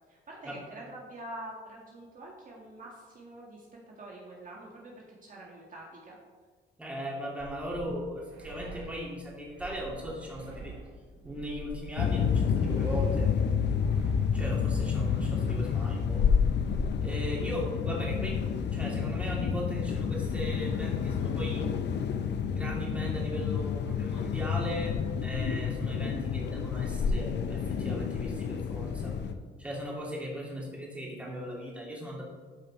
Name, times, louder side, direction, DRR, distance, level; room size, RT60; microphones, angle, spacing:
voice 1, 0.1-3.7 3.9-6.2, right 1 dB, 40° right, -3 dB, 2.0 m, -46 dB
voice 2, 6.8-10.7 11.2-13.3 14.3-16.2 17.0-18.4 18.7-21.7 22.4-29.2 29.6-32.2, equal, 5° right, -4 dB, 3.2 m, -38 dB
sound 1, 7.4-15.1, right 3 dB, 90° right, 2.7 m, -46 dB
sound 2, 12.0-29.3, left 6 dB, 60° left, 0.7 m, -29 dB
13.0 x 5.2 x 4.4 m, 1.5 s
cardioid pair, 90°, 20 cm